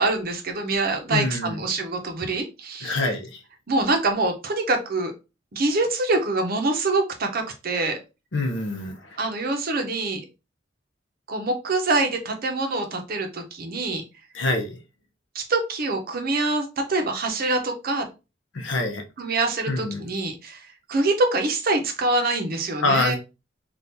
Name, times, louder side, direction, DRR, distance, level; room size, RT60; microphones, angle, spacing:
voice 1, 0.0-3.0 3.7-5.1 5.5-8.0 9.2-10.2 11.3-14.0 15.3-18.1 19.2-23.2, right 2 dB, 50° right, 0.7 m, -25 dB
voice 2, 1.1-1.6 2.8-3.4 8.3-9.2 14.3-14.8 18.5-19.0 19.7-20.0 22.8-23.2, left 2 dB, 70° left, 0.7 m, -25 dB
3.6 x 2.4 x 2.6 m
head